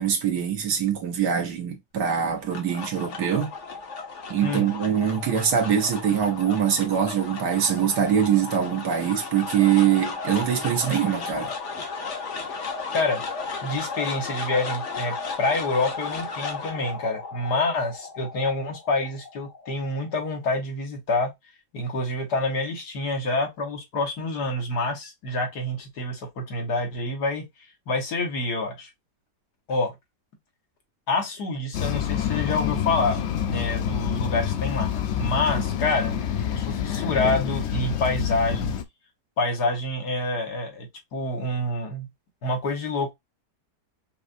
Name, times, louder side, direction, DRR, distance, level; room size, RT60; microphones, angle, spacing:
voice 1, 0.0-3.5 4.3-11.5, right 8 dB, 70° right, 1.7 m, -23 dB
sound 1, 2.2-20.5, left 4 dB, 50° left, 1.1 m, -35 dB
voice 2, 12.5-13.2 13.6-21.3 21.7-27.5 27.9-28.9 29.7-30.0 31.1-36.2 36.5-38.7 39.4-42.1 42.4-43.1, left 2 dB, 65° left, 1.7 m, -27 dB
sound 2, 31.7-38.8, left 10 dB, 90° left, 0.6 m, -27 dB
5.5 x 2.4 x 2.5 m
omnidirectional pair, 1.9 m